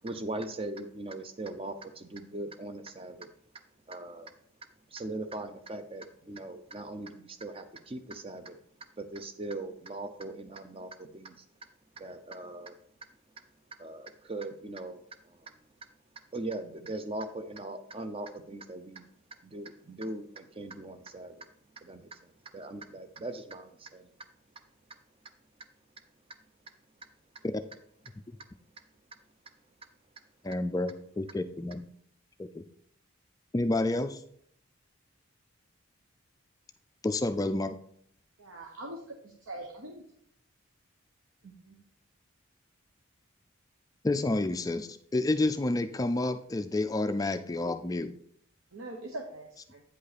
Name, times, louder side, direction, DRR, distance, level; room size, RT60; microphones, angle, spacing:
voice 1, 0.0-3.3 3.9-4.3 4.9-8.6 9.0-11.5 12.0-12.8 13.8-15.5 16.3-19.1 19.4-21.5 21.8-24.1, right 2 dB, 25° right, 9 dB, 0.6 m, -40 dB
voice 2, 30.4-31.8 32.4-32.6 33.5-34.2 37.0-37.7 44.0-48.1, left 2 dB, 15° left, 9 dB, 0.3 m, -29 dB
voice 3, 38.4-39.9 41.4-41.8 48.7-49.8, right 1 dB, 70° right, 1 dB, 1.0 m, -43 dB
9.0 x 5.4 x 4.2 m, 0.65 s
head